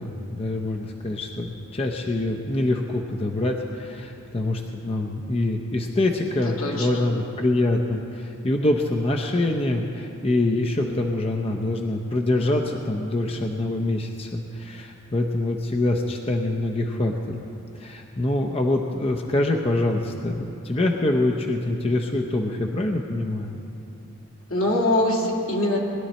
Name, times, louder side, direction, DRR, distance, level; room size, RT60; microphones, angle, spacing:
voice 1, 0.0-17.4 17.8-23.5, left 2 dB, 30° left, 1 dB, 0.6 m, -25 dB
voice 2, 6.6-7.0 24.5-25.8, left 1 dB, 80° left, -2 dB, 2.4 m, -23 dB
20.0 x 11.5 x 4.3 m, 2.7 s
head